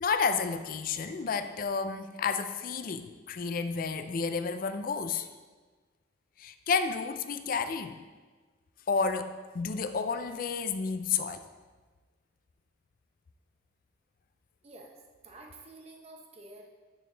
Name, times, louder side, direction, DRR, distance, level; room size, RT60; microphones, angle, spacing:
voice 1, 0.0-5.3 6.4-8.0 8.9-11.5, left 5 dB, 45° left, 9 dB, 0.4 m, -31 dB
voice 2, 15.2-16.7, right 2 dB, 30° right, 1 dB, 0.8 m, -49 dB
6.7 x 6.3 x 3.3 m, 1.3 s
head